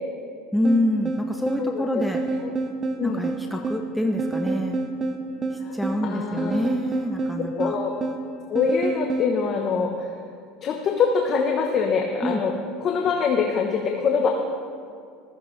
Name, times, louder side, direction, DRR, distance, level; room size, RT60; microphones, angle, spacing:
voice 1, 0.5-2.2 3.0-4.8 5.7-7.8 12.2-12.4, left 1 dB, ahead, 2 dB, 0.7 m, -26 dB
sound 1, 0.6-9.3, right 3 dB, 25° right, 1.1 m, -29 dB
voice 2, 1.6-2.0 2.4-2.5 3.0-3.2 5.6-5.7 6.0-6.6 7.4-7.9 8.5-10.1 10.6-12.5 12.8-14.3, left 5 dB, 40° left, 2 dB, 1.1 m, -24 dB
15.0 x 14.5 x 3.3 m, 2.3 s
supercardioid pair, 115°, 0 cm